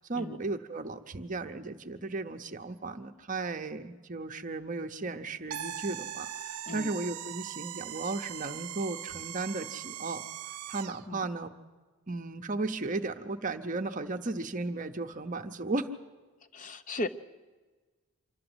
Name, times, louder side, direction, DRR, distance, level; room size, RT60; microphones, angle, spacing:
voice 1, 0.0-10.2 10.7-11.5 12.1-15.9, right 3 dB, 35° right, 6 dB, 0.7 m, -35 dB
sound 1, 5.5-11.1, right 10 dB, 80° right, 0.6 m, -40 dB
voice 2, 16.5-17.1, left 1 dB, 35° left, 12 dB, 0.7 m, -36 dB
26.0 x 12.5 x 7.9 m, 1.3 s
head